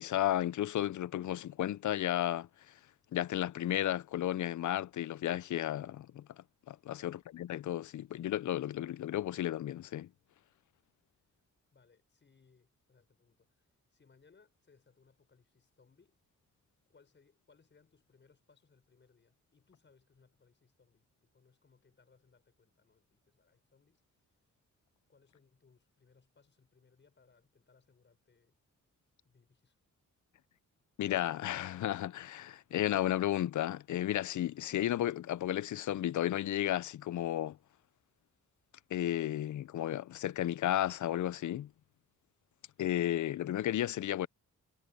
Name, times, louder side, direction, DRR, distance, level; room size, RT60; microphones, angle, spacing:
voice 1, 0.0-2.5 3.1-6.2 6.7-10.1 31.0-37.6 38.9-41.7 42.8-44.3, left 12 dB, 70° left, 0.5 m, -33 dB
voice 2, 11.7-16.2 16.9-24.3 25.1-28.6 29.0-29.8, left 5 dB, 35° left, 6.5 m, -68 dB
wide cardioid pair, 140°, 31 cm